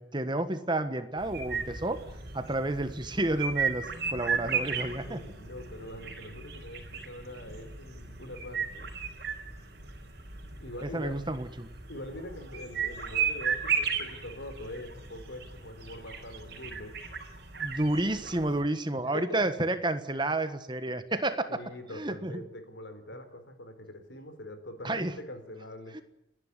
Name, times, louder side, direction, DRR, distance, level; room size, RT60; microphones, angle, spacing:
voice 1, 0.0-2.0 2.3-5.2 10.9-11.7 17.6-21.5 21.9-22.4 24.8-25.1 25.9-26.0, right 2 dB, 25° right, 10 dB, 1.4 m, -30 dB
sound 1, 1.2-18.6, right 6 dB, 60° right, 4.6 m, -35 dB
voice 2, 5.1-8.9 10.6-11.2 11.9-16.9 18.9-19.6 21.5-26.0, left 1 dB, 75° left, 8 dB, 4.3 m, -43 dB
29.5 x 11.5 x 9.8 m, 0.83 s
head